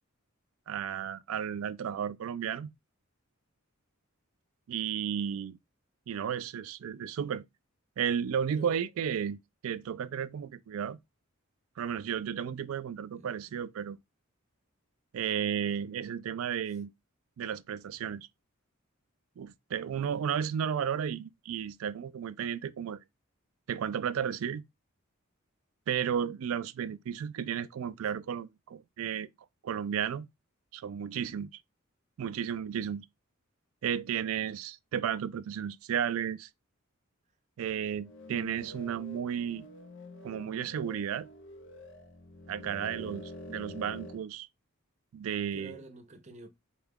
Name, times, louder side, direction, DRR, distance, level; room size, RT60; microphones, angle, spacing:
voice 1, 0.7-2.7 4.7-5.6 6.1-7.4 8.0-11.0 11.8-14.0 15.1-16.9 17.4-18.3 19.4-23.0 23.7-24.6 25.9-29.3 29.6-30.3 30.7-31.5 32.2-33.1 33.8-36.5 37.6-39.7 40.2-41.3 42.5-43.2 43.5-44.5 45.1-45.8, right 8 dB, 75° right, 0.3 m, -33 dB
voice 2, 13.1-13.6 19.9-20.3 42.9-43.2 45.5-46.5, right 2 dB, 35° right, 0.6 m, -48 dB
sound 1, 38.0-44.2, left 1 dB, 60° left, 0.7 m, -47 dB
4.5 x 2.3 x 3.5 m
head